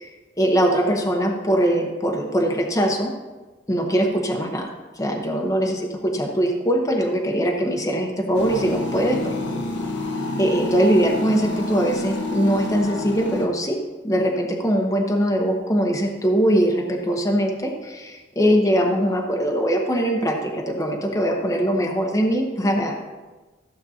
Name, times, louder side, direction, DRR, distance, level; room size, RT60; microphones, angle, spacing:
voice 1, 0.4-3.1 3.7-4.7 5.0-9.4 10.4-13.8 14.0-23.0, equal, 20° left, 0 dB, 1.0 m, -21 dB
sound 1, 8.3-13.5, left 2 dB, 80° left, 1.2 m, -28 dB
15.0 x 7.7 x 2.8 m, 1.2 s
head